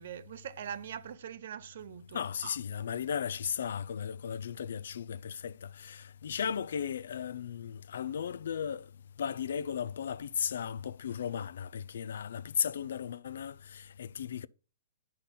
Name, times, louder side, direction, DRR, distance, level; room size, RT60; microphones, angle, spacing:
voice 1, 0.0-2.6, right 9 dB, 60° right, 0.6 m, -43 dB
voice 2, 2.1-8.9 9.2-14.5, left 8 dB, 70° left, 0.3 m, -36 dB
8.3 x 4.1 x 3.8 m
hypercardioid pair, 155°, 0 cm